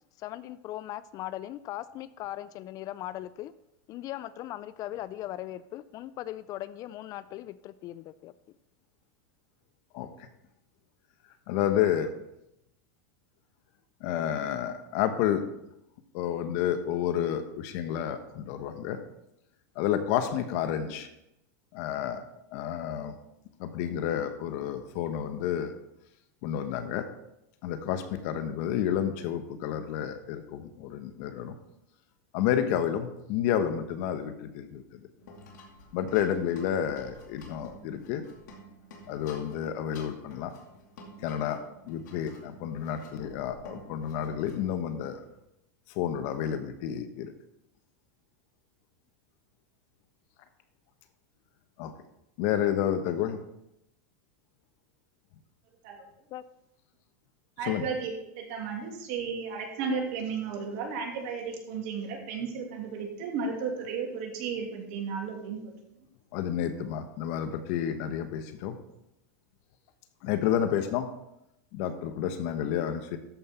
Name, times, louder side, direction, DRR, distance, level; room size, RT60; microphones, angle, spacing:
voice 1, 0.2-3.5 3.9-8.3 56.3-56.4, left 14 dB, 40° left, 16 dB, 0.4 m, -39 dB
voice 2, 9.9-10.3 11.5-12.1 14.0-15.4 16.1-19.0 19.7-21.1 21.7-22.2 22.5-23.2 23.6-25.7 26.4-27.1 27.6-31.5 32.3-34.8 35.9-38.3 39.1-40.5 41.2-45.2 45.9-47.3 51.8-51.9 52.4-53.4 57.6-57.9 66.3-68.8 70.2-71.1 71.7-73.2, left 10 dB, 60° left, 9 dB, 1.1 m, -30 dB
sound 1, 35.2-45.4, left 1 dB, 80° left, 2.4 m, -51 dB
voice 3, 57.6-65.7, right 5 dB, 60° right, 1 dB, 2.6 m, -34 dB
13.0 x 5.5 x 4.3 m, 0.84 s
supercardioid pair, 125°, 9 cm